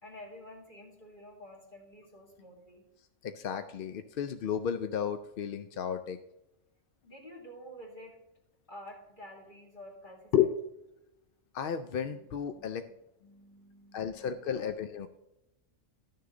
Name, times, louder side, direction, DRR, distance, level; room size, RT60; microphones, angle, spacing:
voice 1, 0.0-2.8 7.0-8.2 8.7-10.3 12.5-12.7 13.2-14.4, equal, 40° left, -1 dB, 2.5 m, -50 dB
voice 2, 3.2-6.2 10.3-10.5 11.5-12.8 13.9-15.1, left 9 dB, 60° left, 9 dB, 0.6 m, -32 dB
12.5 x 6.6 x 3.8 m, 0.90 s
omnidirectional pair, 1.3 m